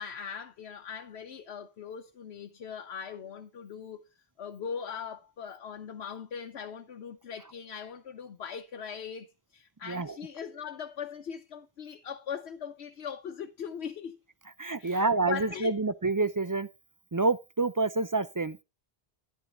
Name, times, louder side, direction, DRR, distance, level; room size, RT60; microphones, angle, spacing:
voice 1, 0.0-4.0 4.4-14.2 14.8-15.8, left 7 dB, 85° left, 1.1 m, -40 dB
voice 2, 14.6-16.7 17.1-18.6, right 3 dB, 30° right, 0.4 m, -28 dB
10.0 x 9.7 x 3.8 m
omnidirectional pair, 1.1 m